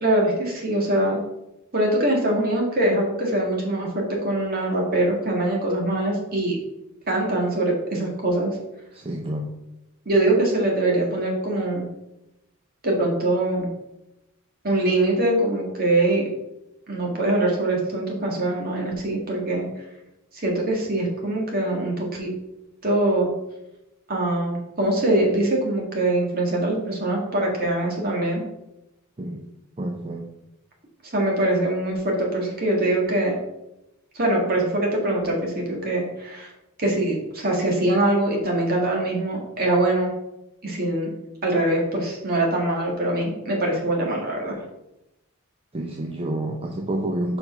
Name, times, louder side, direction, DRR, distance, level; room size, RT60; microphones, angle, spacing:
voice 1, 0.0-1.2 1.7-6.6 7.1-8.5 10.1-11.9 12.8-13.7 14.6-16.2 16.9-19.7 20.4-22.3 22.8-23.3 24.1-28.4 31.1-33.3 34.1-36.5 36.8-40.1 40.6-41.1 41.4-44.6, right 1 dB, 45° right, -1 dB, 1.9 m, -23 dB
voice 2, 8.9-9.5 29.2-29.4 29.8-30.3 45.7-47.4, right 1 dB, 25° right, 2 dB, 0.6 m, -28 dB
5.4 x 4.8 x 5.4 m, 0.91 s
head